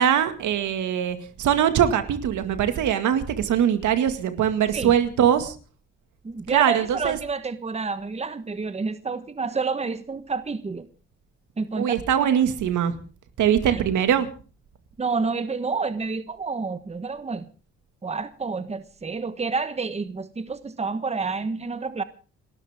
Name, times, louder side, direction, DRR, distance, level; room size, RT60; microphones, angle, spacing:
voice 1, 0.0-5.6 6.5-7.2 11.8-12.9 13.4-14.3, right 9 dB, 75° right, 9 dB, 2.1 m, -22 dB
voice 2, 6.2-10.9 11.6-11.9 13.6-13.8 15.0-17.5 18.0-22.0, right 4 dB, 20° right, 12 dB, 1.2 m, -29 dB
30.0 x 13.0 x 3.6 m, 0.37 s
cardioid pair, 90°, 30 cm